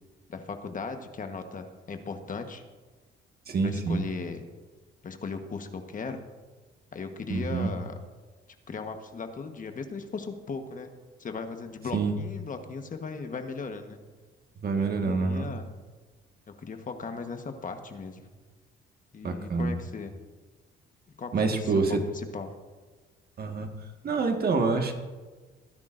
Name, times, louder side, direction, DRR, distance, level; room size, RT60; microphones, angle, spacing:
voice 1, 0.3-2.6 3.6-4.4 5.0-6.2 6.9-7.9 8.7-10.9 11.2-14.0 14.8-15.7 16.5-18.2 19.1-20.1 21.2-21.6 22.3-22.5, left 4 dB, 40° left, 6 dB, 1.3 m, -37 dB
voice 2, 3.5-4.1 7.3-7.7 11.9-12.1 14.6-15.5 19.2-19.7 21.3-22.0 23.4-24.9, right 4 dB, 50° right, 4 dB, 1.6 m, -27 dB
20.5 x 10.5 x 2.6 m, 1.3 s
cardioid pair, 90°, 20 cm